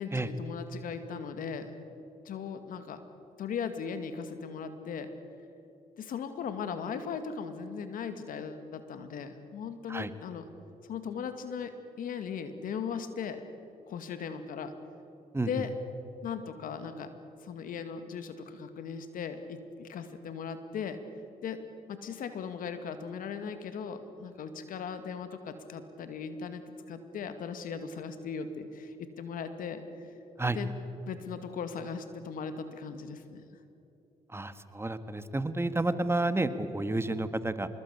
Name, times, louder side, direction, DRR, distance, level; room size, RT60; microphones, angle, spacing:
voice 1, 0.0-1.7 2.3-3.0 3.4-5.1 6.0-10.5 10.8-13.4 13.9-14.7 15.5-15.7 16.2-17.1 17.4-21.0 21.4-21.6 21.9-30.1 30.5-30.7 31.1-33.4, left 6 dB, 70° left, 9 dB, 2.2 m, -38 dB
voice 2, 34.3-37.7, right 2 dB, 15° right, 11 dB, 1.7 m, -30 dB
25.0 x 21.0 x 8.4 m, 2.8 s
supercardioid pair, 60°, 15 cm